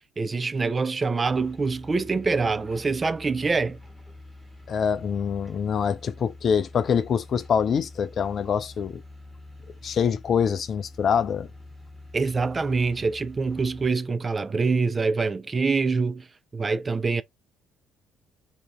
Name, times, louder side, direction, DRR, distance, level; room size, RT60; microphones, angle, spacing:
voice 1, 0.2-3.8 12.1-16.3 16.5-17.2, right 4 dB, 25° right, 0.3 m, -25 dB
sound 1, 1.2-13.9, left 2 dB, 5° left, 1.3 m, -46 dB
voice 2, 4.7-9.0 9.8-11.5, left 7 dB, 45° left, 0.4 m, -25 dB
2.8 x 2.6 x 3.2 m
figure-of-eight pair, 50°, 0 cm